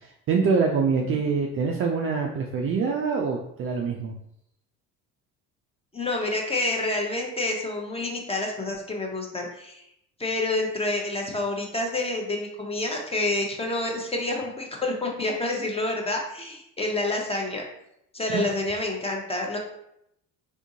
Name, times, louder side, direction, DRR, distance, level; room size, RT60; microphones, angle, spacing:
voice 1, 0.0-4.1 18.3-18.5, right 5 dB, 35° right, 0 dB, 0.4 m, -25 dB
voice 2, 5.9-9.8 10.2-17.6 18.1-19.6, left 2 dB, 15° left, 1 dB, 0.7 m, -28 dB
3.5 x 2.7 x 2.7 m, 0.77 s
hypercardioid pair, 60°, 43 cm